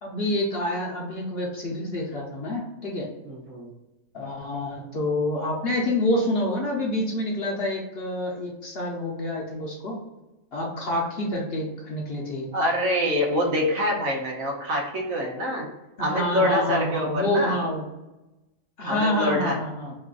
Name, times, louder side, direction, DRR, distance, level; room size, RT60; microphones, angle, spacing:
voice 1, 0.0-3.1 4.1-10.0 10.5-12.5 16.0-17.8 18.8-20.0, left 1 dB, 55° left, -2 dB, 0.8 m, -27 dB
voice 2, 3.3-3.7 12.5-15.7 16.0-17.6 18.8-19.6, left 1 dB, 70° right, 0 dB, 1.2 m, -25 dB
3.1 x 2.4 x 3.7 m, 1.0 s
omnidirectional pair, 1.5 m